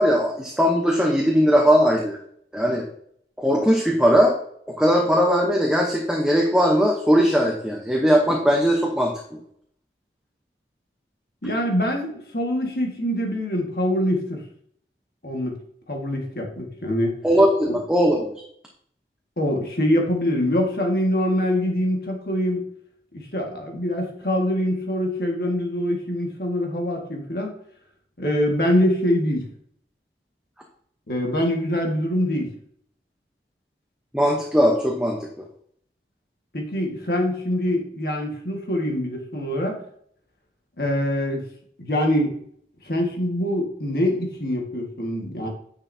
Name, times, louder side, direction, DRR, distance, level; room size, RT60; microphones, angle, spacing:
voice 1, 0.0-2.2 2.5-2.8 3.4-4.3 4.8-9.4 17.2-18.4 34.1-35.2, equal, 5° right, 0 dB, 0.8 m, -19 dB
voice 2, 11.4-14.4 15.2-15.6 15.9-17.2 17.7-17.8 19.4-22.6 23.1-27.5 28.2-29.5 31.1-32.5 36.5-39.8 40.8-41.4 41.8-42.4 42.8-45.5, left 1 dB, 60° left, 1 dB, 1.7 m, -24 dB
9.6 x 6.2 x 2.7 m, 0.64 s
head